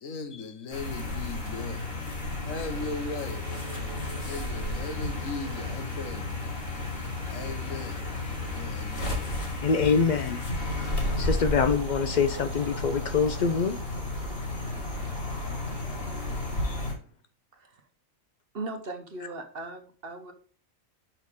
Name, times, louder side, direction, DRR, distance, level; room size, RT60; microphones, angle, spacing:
voice 1, 0.0-1.9 2.4-3.5 4.2-6.4 7.3-9.4, left 4 dB, 70° left, 1.4 m, -38 dB
sound 1, 0.7-16.9, left 2 dB, 45° left, 2.1 m, -33 dB
sound 2, 2.6-9.2 10.6-17.2, right 6 dB, 65° right, 1.6 m, -48 dB
voice 2, 9.6-10.4 11.2-13.8 16.6-16.8, left 5 dB, 85° left, 0.4 m, -25 dB
voice 3, 17.5-17.9 18.5-20.3, right 2 dB, 45° right, 1.1 m, -38 dB
6.4 x 6.1 x 3.5 m
omnidirectional pair, 1.4 m